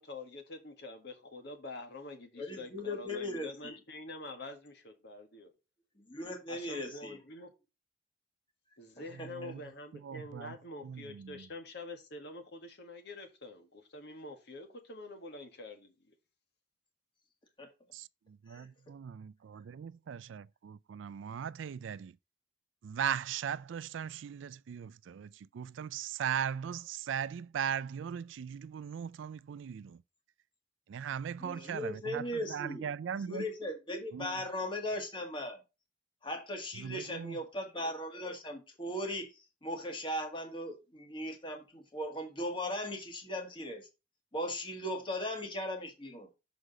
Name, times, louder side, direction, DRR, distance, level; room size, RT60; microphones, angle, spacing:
voice 1, 0.0-5.5 6.5-7.5 8.8-16.2, left 2 dB, 65° left, 1.8 m, -46 dB
voice 2, 2.4-3.8 6.0-7.2 9.2-9.5 17.6-17.7 18.5-18.7 31.4-32.9 33.3-35.6 36.2-43.9 44.3-46.3, left 1 dB, 25° left, 1.8 m, -38 dB
voice 3, 9.2-9.6 9.9-10.5 10.8-11.5 17.9-22.1 22.8-30.0 30.9-33.5 34.1-34.4 36.7-37.4, right 8 dB, 80° right, 0.3 m, -39 dB
6.5 x 5.0 x 5.2 m
head